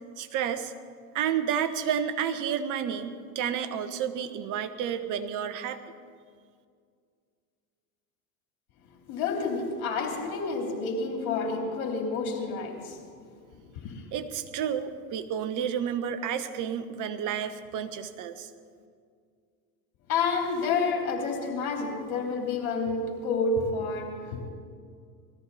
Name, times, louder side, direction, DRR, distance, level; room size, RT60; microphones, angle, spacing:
voice 1, 0.2-0.7 1.1-5.8 14.1-18.5, right 8 dB, 45° right, 10 dB, 1.3 m, -30 dB
voice 2, 8.8-14.1 20.1-24.5, left 4 dB, 65° left, 1 dB, 3.5 m, -30 dB
20.0 x 14.0 x 4.2 m, 2.1 s
hypercardioid pair, 95°, 44 cm